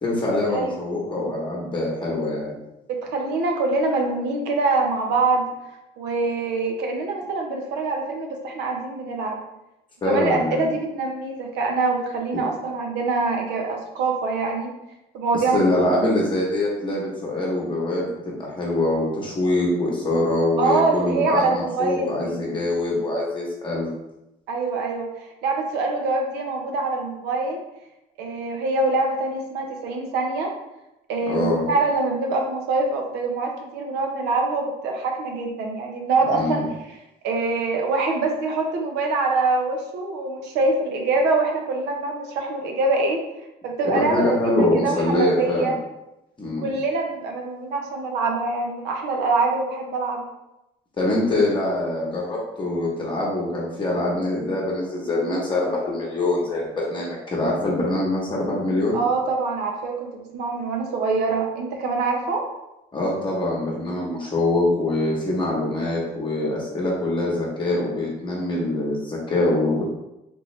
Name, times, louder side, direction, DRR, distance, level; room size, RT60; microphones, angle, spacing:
voice 1, 0.0-2.5 10.0-10.6 12.3-12.4 15.3-23.9 31.3-31.7 36.3-36.7 43.8-45.7 46.4-46.7 51.0-59.0 62.9-69.9, left 2 dB, 30° left, -4 dB, 1.0 m, -24 dB
voice 2, 2.9-5.4 6.0-9.4 10.0-14.7 15.1-15.6 20.6-22.4 24.5-25.1 25.4-27.6 28.2-30.5 31.1-36.6 37.2-43.2 43.6-45.8 46.6-50.3 58.9-62.4, right 3 dB, 90° right, 2 dB, 0.8 m, -24 dB
3.5 x 3.0 x 3.1 m, 0.91 s
cardioid pair, 110°, 17 cm